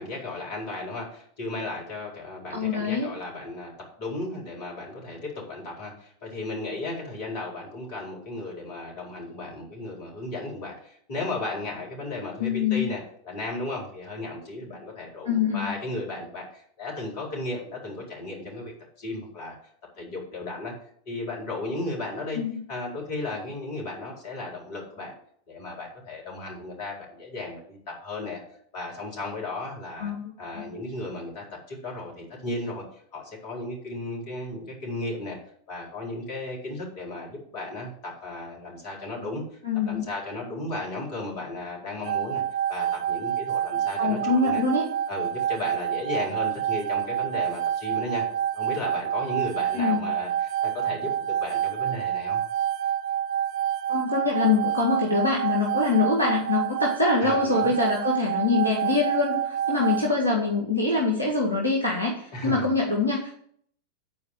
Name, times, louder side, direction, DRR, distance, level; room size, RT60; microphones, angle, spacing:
voice 1, 0.0-3.7 4.0-18.7 19.0-19.6 20.0-20.7 21.1-22.4 22.7-25.1 25.5-28.4 28.7-30.1 30.4-32.8 33.1-35.4 35.7-39.4 39.8-42.4 42.7-44.6 45.1-48.2 48.5-52.4 57.2-57.7 62.3-62.7, left 2 dB, 45° left, -2 dB, 4.3 m, -35 dB
voice 2, 2.5-3.1 12.4-12.9 15.2-15.7 22.3-22.6 30.0-30.6 39.6-40.0 44.0-44.8 49.7-50.0 53.9-63.3, left 4 dB, 85° left, -1 dB, 1.8 m, -24 dB
sound 1, 42.0-60.1, right 10 dB, 50° right, 0.3 m, -28 dB
9.8 x 4.7 x 7.8 m, 0.62 s
figure-of-eight pair, 90°, 0 cm